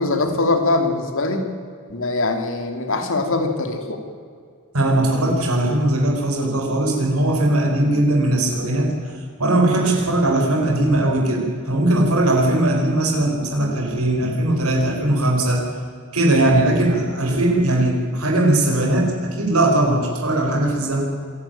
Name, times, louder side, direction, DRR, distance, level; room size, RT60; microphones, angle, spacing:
voice 1, 0.0-1.4 1.9-4.0, left 2 dB, 65° left, 5 dB, 2.8 m, -22 dB
voice 2, 4.7-15.7 16.1-21.0, right 1 dB, 90° right, 1 dB, 4.8 m, -19 dB
26.5 x 11.5 x 9.1 m, 2.2 s
head